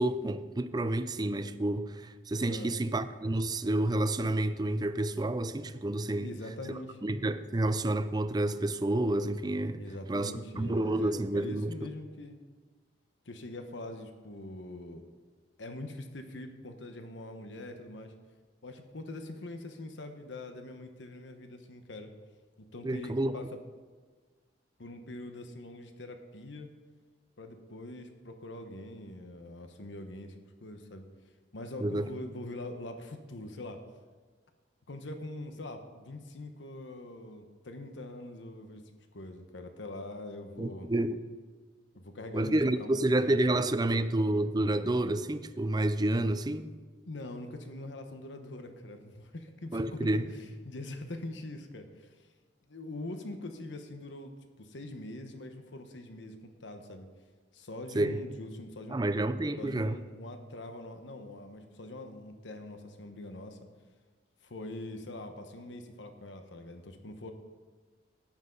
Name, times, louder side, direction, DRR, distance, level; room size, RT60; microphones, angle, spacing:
voice 1, 0.0-6.3 7.0-9.8 10.1-11.7 22.8-23.3 31.8-32.1 40.6-41.2 42.3-46.7 49.7-50.3 57.9-58.2 58.9-60.0, right 1 dB, 20° right, 0.5 m, -29 dB
voice 2, 6.2-7.1 9.8-12.4 13.2-15.0 15.6-18.1 18.6-22.1 22.7-23.6 24.8-26.7 27.4-31.1 31.5-33.8 34.9-40.9 41.9-43.4 47.1-52.3 52.7-57.1 57.5-59.0 59.6-63.6 64.4-67.3, left 1 dB, 85° left, 1.1 m, -43 dB
13.0 x 10.0 x 3.9 m
head